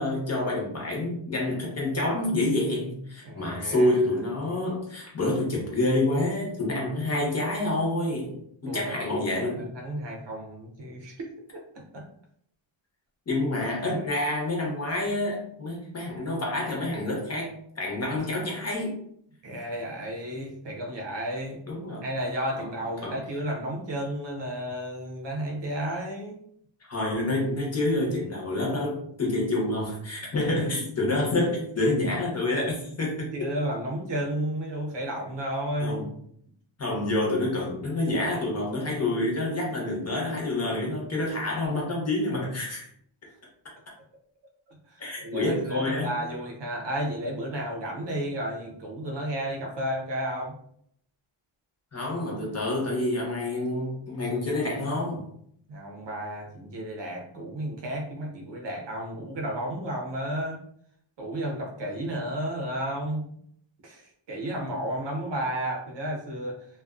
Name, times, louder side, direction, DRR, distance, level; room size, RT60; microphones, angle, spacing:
voice 1, 0.0-9.7 13.3-19.0 21.7-22.0 22.6-22.7 23.0-23.2 26.9-33.3 35.8-36.1 36.8-42.9 45.0-46.2 51.9-55.3, left 2 dB, 30° left, -2 dB, 0.9 m, -28 dB
voice 2, 3.2-4.0 8.7-11.3 11.7-12.1 13.8-14.0 19.4-21.6 22.0-26.4 33.3-36.1 44.9-50.5 55.7-60.6 61.2-63.2 63.8-66.6, right 1 dB, 60° right, 0 dB, 0.7 m, -32 dB
2.4 x 2.3 x 2.4 m, 0.66 s
wide cardioid pair, 125°, 48 cm